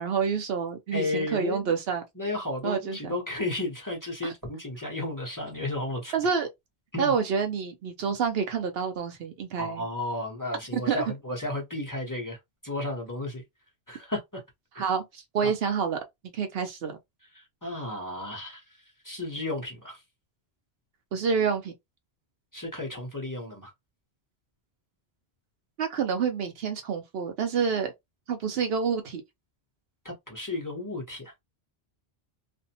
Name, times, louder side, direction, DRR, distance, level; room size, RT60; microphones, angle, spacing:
voice 1, 0.0-2.0 2.6-3.1 4.2-4.3 6.1-6.5 7.0-9.8 10.7-11.0 14.8-16.0 16.3-17.0 21.1-21.7 25.8-27.9 28.3-29.2, right 6 dB, 70° right, 0.8 m, -28 dB
voice 2, 0.9-1.7 2.2-6.1 6.9-7.1 9.6-12.4 12.6-13.4 13.9-14.2 14.7-14.8 15.4-15.5 17.4-18.6 19.0-20.0 22.5-23.7 30.0-31.3, left 2 dB, 20° left, 0.8 m, -33 dB
2.5 x 2.1 x 2.7 m
omnidirectional pair, 1.1 m